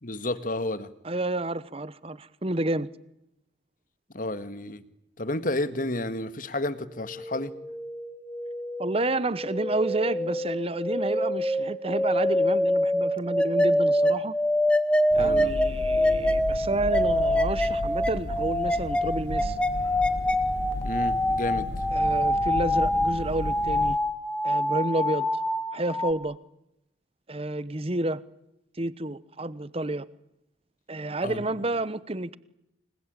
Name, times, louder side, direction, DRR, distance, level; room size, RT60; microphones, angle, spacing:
voice 1, 0.0-0.9 4.1-4.8 5.2-7.5 15.2-15.5 20.8-21.7 31.2-31.4, left 1 dB, 45° left, 1.8 m, -31 dB
voice 2, 1.0-2.9 8.8-14.3 15.1-19.6 21.9-24.0 24.4-25.3 25.7-26.4 27.3-28.2 28.8-30.0 30.9-32.4, right 2 dB, 30° right, 1.0 m, -30 dB
sound 1, 7.0-26.1, left 1 dB, 5° left, 1.9 m, -26 dB
sound 2, 15.1-24.0, left 1 dB, 65° left, 1.0 m, -35 dB
29.0 x 22.5 x 9.0 m
head